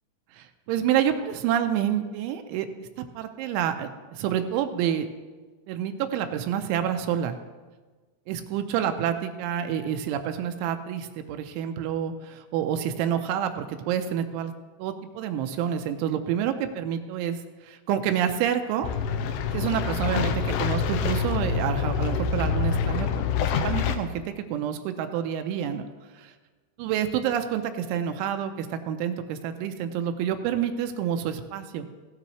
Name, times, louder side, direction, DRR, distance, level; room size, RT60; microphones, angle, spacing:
voice 1, 0.4-5.1 5.7-7.3 8.3-14.5 14.8-17.4 17.6-18.9 19.5-25.9 26.2-26.3 26.8-31.9, right 9 dB, 85° right, 7 dB, 3.0 m, -28 dB
sound 1, 18.8-24.0, left 6 dB, 80° left, 2.6 m, -26 dB
16.0 x 9.7 x 3.0 m, 1.3 s
omnidirectional pair, 5.5 m